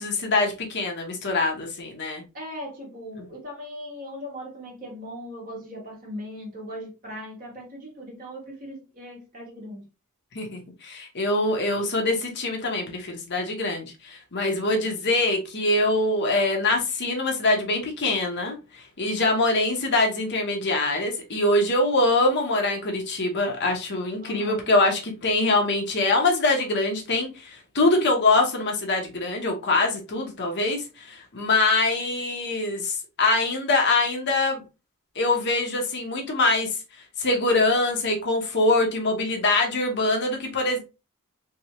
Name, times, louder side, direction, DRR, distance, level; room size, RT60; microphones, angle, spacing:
voice 1, 0.0-2.2 3.2-3.3 10.3-34.6 35.1-36.8 37.2-40.8, left 2 dB, 50° left, 1.0 m, -24 dB
voice 2, 2.3-9.8 11.7-11.9 24.2-24.7, equal, 40° right, 1.8 m, -39 dB
3.5 x 3.3 x 3.0 m
head